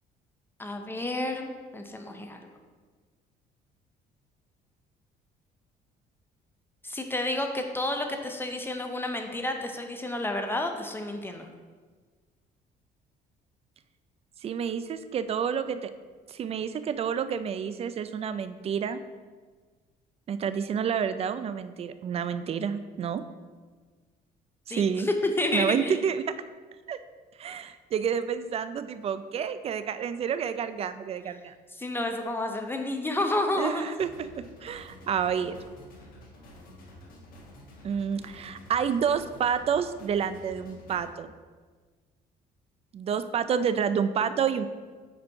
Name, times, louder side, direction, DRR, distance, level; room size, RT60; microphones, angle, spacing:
voice 1, 0.6-2.4 6.8-11.5 24.7-25.9 31.7-34.0, left 1 dB, 15° left, 4 dB, 0.5 m, -30 dB
voice 2, 14.4-15.9 16.3-19.0 20.3-23.2 24.7-25.1 25.5-26.4 26.9-27.0 27.4-31.5 33.6-35.6 37.8-41.3 42.9-44.7, right 7 dB, 35° right, 12 dB, 0.4 m, -29 dB
sound 1, 34.0-41.0, left 1 dB, 55° left, 1.4 m, -50 dB
5.1 x 4.4 x 4.6 m, 1.4 s
cardioid pair, 110°, 17 cm